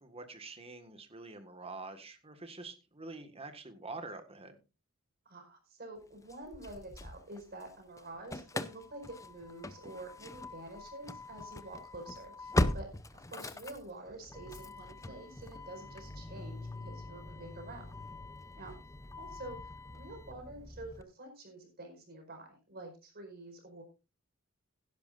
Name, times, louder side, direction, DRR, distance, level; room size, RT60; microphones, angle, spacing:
voice 1, 0.0-4.6, right 3 dB, 30° right, 8 dB, 1.7 m, -46 dB
voice 2, 5.2-12.9 13.1-18.0 18.6-18.7 19.2-19.6 19.9-23.8, right 2 dB, 45° right, 4 dB, 4.8 m, -48 dB
Engine starting / Slam, 6.3-7.7 8.0-21.0, left 1 dB, 15° left, 0.6 m, -40 dB
16.5 x 11.0 x 2.6 m, 0.29 s
head